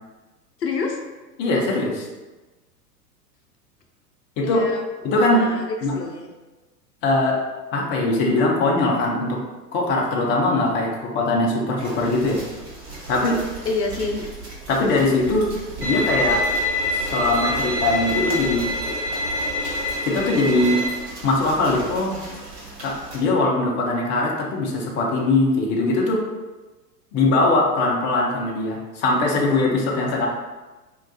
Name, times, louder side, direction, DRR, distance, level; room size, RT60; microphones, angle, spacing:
voice 1, 0.6-1.0 4.4-6.3 13.7-14.2, left 3 dB, 85° left, 2 dB, 0.6 m, -28 dB
voice 2, 1.4-2.1 4.4-4.7 5.0-5.4 5.8-6.0 7.0-7.4 7.7-9.4 9.7-12.4 13.1-13.4 14.7-15.5 15.8-16.4 16.9-18.7 20.0-20.8 21.2-22.2 22.8-26.2 27.1-30.3, left 2 dB, 25° left, -1 dB, 0.5 m, -21 dB
sound 1, 11.8-23.2, right 3 dB, 40° right, 1.1 m, -37 dB
Bowed string instrument, 15.8-20.9, left 1 dB, 75° right, 1.4 m, -25 dB
4.5 x 2.3 x 2.2 m, 1.2 s
figure-of-eight pair, 95°, 48 cm